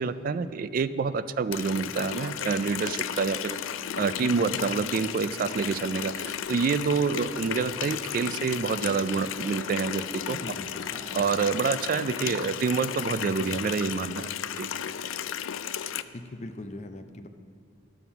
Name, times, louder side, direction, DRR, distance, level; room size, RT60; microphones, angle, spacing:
voice 1, 0.0-3.6 4.0-10.4 11.1-14.7, right 5 dB, 45° right, 13 dB, 0.3 m, -27 dB
sound 1, 1.3-11.4, equal, 20° right, 1.5 m, -52 dB
Water tap faucet, 1.5-16.0, left 9 dB, 90° left, 0.4 m, -34 dB
voice 2, 4.2-4.6 10.2-10.9 16.1-17.3, left 1 dB, 35° left, 8 dB, 0.5 m, -40 dB
11.0 x 7.1 x 5.8 m, 2.3 s
head